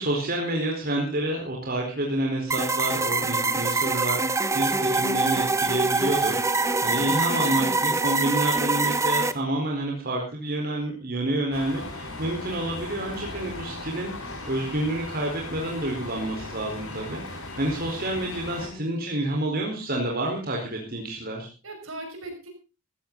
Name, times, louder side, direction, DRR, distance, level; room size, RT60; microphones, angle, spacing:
voice 1, 0.0-21.5, right 1 dB, 45° right, 0 dB, 4.3 m, -29 dB
sound 1, 2.5-9.3, right 3 dB, 15° right, 0.8 m, -24 dB
voice 2, 6.9-8.0 18.6-19.2 21.6-22.5, right 1 dB, 70° right, 4 dB, 5.9 m, -39 dB
sound 2, 11.5-18.7, left 2 dB, 85° left, 5.1 m, -37 dB
15.5 x 14.5 x 4.0 m, 0.31 s
head